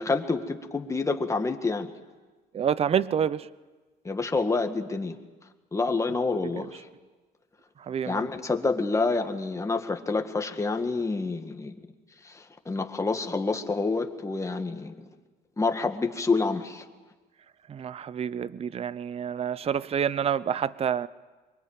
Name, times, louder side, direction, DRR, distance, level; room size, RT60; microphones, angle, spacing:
voice 1, 0.0-1.9 4.0-5.2 5.7-6.9 8.0-11.8 12.2-15.1 15.6-16.8, left 3 dB, 20° left, 2.1 m, -28 dB
voice 2, 2.5-3.5 7.9-8.2 17.7-21.1, right 8 dB, 35° right, 0.7 m, -28 dB
24.0 x 22.5 x 9.1 m
cardioid pair, 110°, 17 cm